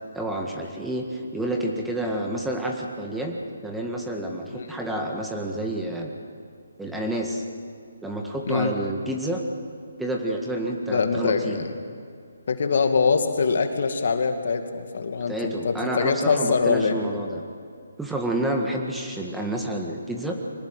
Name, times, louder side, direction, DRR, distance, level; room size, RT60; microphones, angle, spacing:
voice 1, 0.1-6.1 6.8-7.4 8.0-9.4 10.0-11.7 15.3-17.4 18.0-20.3, right 1 dB, 5° right, 0 dB, 1.8 m, -29 dB
voice 2, 10.9-11.8 12.5-17.0, left 5 dB, 60° left, 6 dB, 2.3 m, -23 dB
23.5 x 18.5 x 9.2 m, 2.3 s
hypercardioid pair, 150°, 0 cm